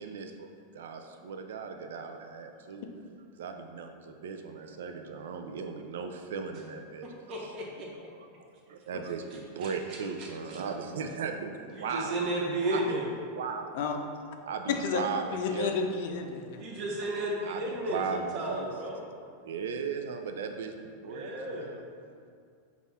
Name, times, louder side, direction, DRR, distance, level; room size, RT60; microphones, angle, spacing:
voice 1, 0.0-2.9 3.3-7.1 8.4-12.2 12.7-13.0 13.3-13.8 14.4-15.7 17.4-18.8 19.4-21.9, right 5 dB, 90° right, 5 dB, 0.3 m, -37 dB
voice 2, 7.3-7.9 9.6-10.3 11.7-13.1 16.5-19.0 21.0-21.7, right 1 dB, 35° right, -3 dB, 0.9 m, -33 dB
voice 3, 14.7-15.0 15.3-16.6, left 5 dB, 60° left, 4 dB, 0.5 m, -31 dB
5.4 x 2.4 x 4.1 m, 2.2 s
supercardioid pair, 150°, 0 cm